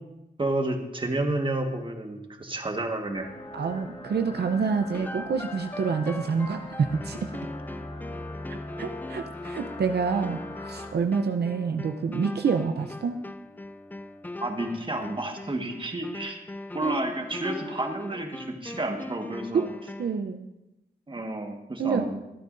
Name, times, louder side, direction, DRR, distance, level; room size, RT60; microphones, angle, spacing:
voice 1, 0.4-3.3 14.4-16.4 16.7-19.7 21.1-22.1, right 2 dB, 30° right, 4 dB, 1.5 m, -30 dB
sound 1, 3.1-10.9, left 2 dB, 30° left, 1.4 m, -41 dB
voice 2, 3.5-7.3 8.5-13.2 17.7-17.8 19.5-19.6 20.0-20.5 21.8-22.0, right 5 dB, 70° right, 6 dB, 0.7 m, -27 dB
sound 2, 4.9-20.2, left 2 dB, 10° left, 0.4 m, -40 dB
24.0 x 9.3 x 2.6 m, 0.93 s
wide cardioid pair, 90°, 18 cm